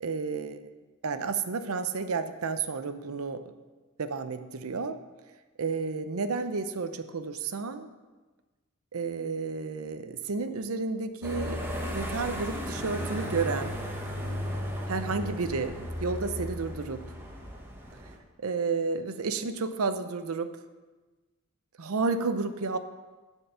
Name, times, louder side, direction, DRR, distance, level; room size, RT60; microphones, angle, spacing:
voice 1, 0.0-0.7 1.0-3.5 4.0-5.0 5.6-7.9 8.9-11.6 11.9-13.8 14.9-17.1 18.4-20.6 21.8-22.8, right 4 dB, 80° right, 10 dB, 0.6 m, -31 dB
sound 1, 11.2-18.2, equal, 10° right, 1.1 m, -35 dB
11.0 x 4.6 x 6.8 m, 1.2 s
head